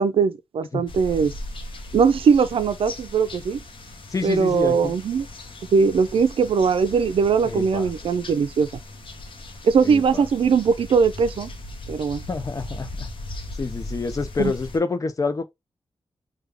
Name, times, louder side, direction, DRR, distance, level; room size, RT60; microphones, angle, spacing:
voice 1, 0.0-1.3 1.9-3.6 4.2-5.2 5.7-8.7 9.6-11.5 11.9-12.2 14.4-14.5, right 5 dB, 80° right, 0.4 m, -20 dB
sound 1, 0.9-14.8, left 1 dB, 70° left, 0.8 m, -38 dB
voice 2, 4.1-4.9 7.4-7.9 9.8-10.3 12.3-13.1 13.5-15.4, left 4 dB, 35° left, 0.5 m, -27 dB
3.3 x 2.3 x 3.4 m
wide cardioid pair, 95°, 9 cm